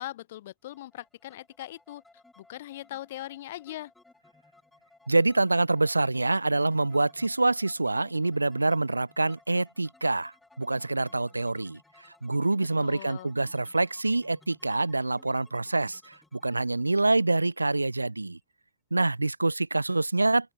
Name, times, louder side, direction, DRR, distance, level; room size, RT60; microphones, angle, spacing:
voice 1, 0.0-2.0 2.4-3.9 12.8-13.3, left 14 dB, 55° left, 0.5 m, -40 dB
sound 1, 0.7-18.4, left 2 dB, 5° left, 5.9 m, -60 dB
voice 2, 5.1-11.8 12.2-18.4 18.9-20.5, right 2 dB, 80° right, 0.4 m, -26 dB
open air
figure-of-eight pair, 90°, 0 cm